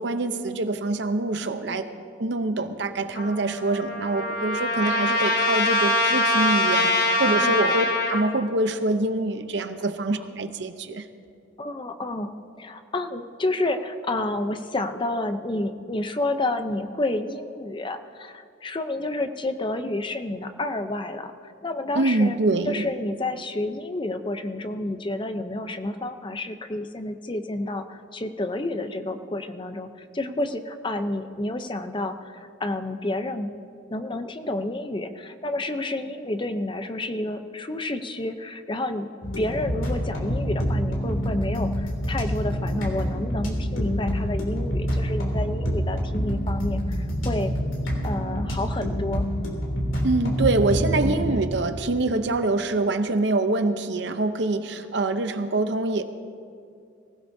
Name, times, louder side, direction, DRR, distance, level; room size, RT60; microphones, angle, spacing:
voice 1, 0.0-1.9 2.2-11.1 21.9-22.8 50.0-56.0, right 2 dB, 60° right, 9 dB, 0.7 m, -25 dB
Trumpet, 3.1-8.3, left 1 dB, 50° left, 1.4 m, -23 dB
voice 2, 11.6-22.4 22.6-33.5 33.9-39.1 39.4-47.5 48.0-49.2 50.8-51.2, left 2 dB, 25° left, 8 dB, 0.6 m, -30 dB
sound 1, 39.2-51.4, equal, 80° left, 3.1 m, -27 dB
24.0 x 16.0 x 2.7 m, 2.4 s
head